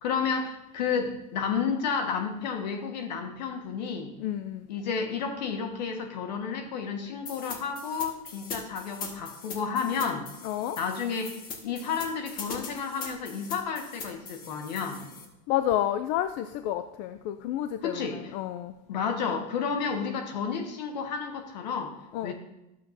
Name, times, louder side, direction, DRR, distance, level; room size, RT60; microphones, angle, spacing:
voice 1, 0.0-4.1 4.7-10.2 10.8-11.4 11.6-15.1 17.8-18.3 18.9-21.9 22.2-22.3, left 6 dB, 85° left, 5 dB, 1.4 m, -31 dB
voice 2, 4.2-4.7 10.4-10.8 15.5-18.8 22.1-22.3, left 11 dB, 60° left, 10 dB, 0.5 m, -30 dB
sound 1, 7.3-15.3, left 5 dB, 45° left, 1.6 m, -41 dB
12.5 x 7.6 x 2.7 m, 0.97 s
supercardioid pair, 115°, 21 cm